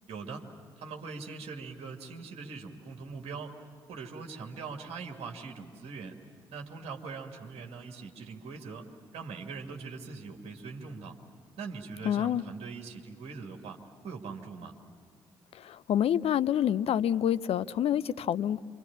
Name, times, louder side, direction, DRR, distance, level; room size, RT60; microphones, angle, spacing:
voice 1, 0.1-0.5 0.8-3.6 3.9-6.2 6.5-11.2 11.6-14.7, right 4 dB, 55° right, 2.4 m, -42 dB
voice 2, 12.0-12.4 15.5-18.6, left 10 dB, 55° left, 0.6 m, -27 dB
28.0 x 25.5 x 7.4 m
figure-of-eight pair, 40°, 12 cm